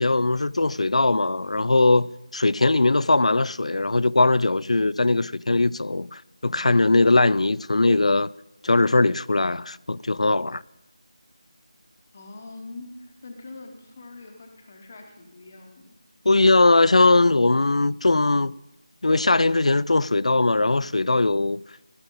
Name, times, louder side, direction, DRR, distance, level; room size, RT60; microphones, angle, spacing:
voice 1, 0.0-8.3 8.6-10.6 16.3-18.5 19.0-21.6, left 2 dB, 85° left, 0.3 m, -20 dB
voice 2, 12.1-15.9, left 2 dB, 15° left, 0.7 m, -43 dB
16.5 x 12.5 x 3.7 m
figure-of-eight pair, 180°, 3 cm